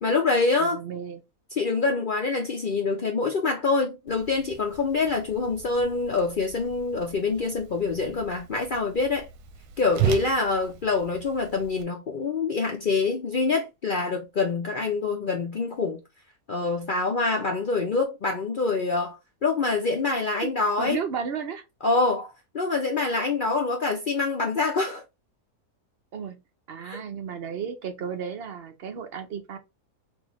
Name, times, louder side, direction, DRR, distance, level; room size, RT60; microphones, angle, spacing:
voice 1, 0.0-0.8 1.5-9.3 9.8-16.0 16.5-21.0 21.8-25.0 26.8-27.0, left 3 dB, 60° left, 0.5 m, -25 dB
voice 2, 0.6-1.2 20.8-21.6 26.1-26.4 26.7-29.6, right 6 dB, 55° right, 0.7 m, -33 dB
Whoosh swoosh swish, 4.1-11.8, right 11 dB, 80° right, 1.1 m, -36 dB
4.1 x 2.7 x 3.0 m
omnidirectional pair, 1.7 m